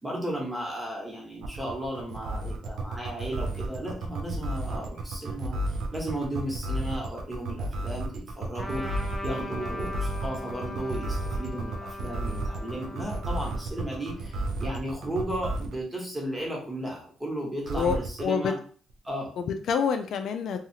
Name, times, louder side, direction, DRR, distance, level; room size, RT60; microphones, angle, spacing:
voice 1, 0.0-18.6 19.0-19.3, right 1 dB, 15° right, -2 dB, 1.3 m, -35 dB
sound 1, 1.4-15.8 17.6-18.2, right 2 dB, 75° right, 0.5 m, -32 dB
Trumpet, 8.6-14.4, left 2 dB, 10° left, 0.6 m, -40 dB
voice 2, 17.7-18.5 19.4-20.6, left 6 dB, 70° left, 7 dB, 0.3 m, -27 dB
2.7 x 2.4 x 2.8 m, 0.42 s
cardioid pair, 90°, 0 cm